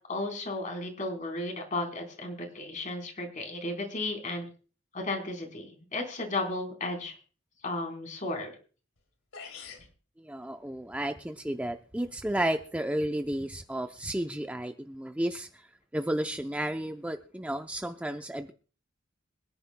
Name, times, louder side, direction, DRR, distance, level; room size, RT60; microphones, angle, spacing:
voice 1, 0.1-4.5 4.9-7.1 7.6-8.5, left 2 dB, 40° left, 2 dB, 4.0 m, -34 dB
sound 1, 9.0-9.1 9.3-9.9, left 5 dB, 80° left, 2.8 m, -44 dB
voice 2, 10.2-15.6 15.9-18.5, right 1 dB, 5° right, 6 dB, 0.5 m, -32 dB
25.5 x 10.5 x 2.2 m, 0.38 s
head